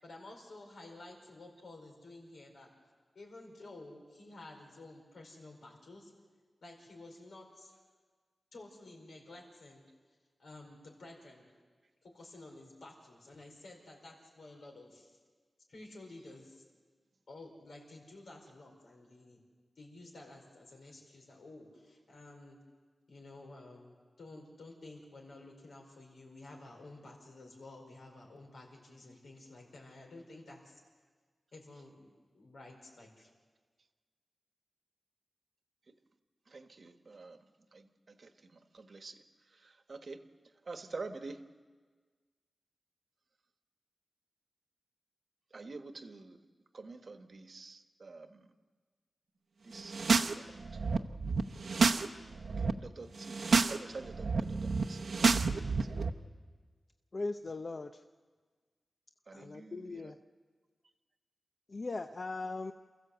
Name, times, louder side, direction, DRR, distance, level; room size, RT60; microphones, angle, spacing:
voice 1, 0.0-2.7 3.1-6.1 6.6-7.8 8.5-9.8 10.4-11.5 12.0-15.2 15.7-16.6 17.3-19.4 19.8-22.6 23.1-30.8 31.5-33.3, left 2 dB, 80° left, 1 dB, 5.0 m, -52 dB
voice 2, 36.5-40.3 40.6-41.5 45.5-46.4 46.7-48.5 49.6-51.1 52.6-53.4 53.7-55.4 55.8-55.9 59.3-60.1, right 3 dB, 50° right, 8 dB, 1.3 m, -48 dB
sound 1, 49.8-50.3 50.6-52.0 52.3-52.7 53.2-53.8 54.0-56.1, right 4 dB, 75° right, 0.9 m, -29 dB
voice 3, 57.1-58.0 59.3-60.2 61.7-62.7, left 3 dB, 40° left, 8 dB, 0.6 m, -39 dB
28.5 x 14.5 x 8.1 m, 1.5 s
wide cardioid pair, 125°, 0 cm